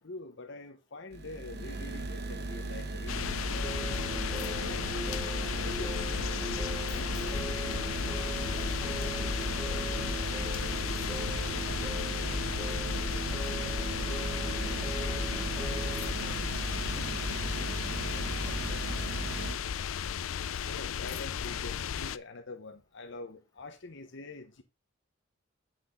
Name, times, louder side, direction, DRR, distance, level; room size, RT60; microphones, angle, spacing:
voice 1, 0.0-4.9 5.5-6.7 6.9-7.5 20.7-24.6, left 3 dB, 65° left, 1.0 m, -45 dB
sound 1, 1.1-19.6, right 2 dB, 55° right, 1.0 m, -36 dB
sound 2, 3.1-22.2, left 8 dB, 80° left, 0.5 m, -34 dB
sound 3, 3.6-16.1, right 1 dB, 5° right, 1.0 m, -41 dB
voice 2, 8.6-11.3 11.6-12.9 13.6-14.1 14.5-14.8 15.4-19.3, left 1 dB, 20° left, 2.1 m, -52 dB
8.1 x 6.2 x 3.7 m
head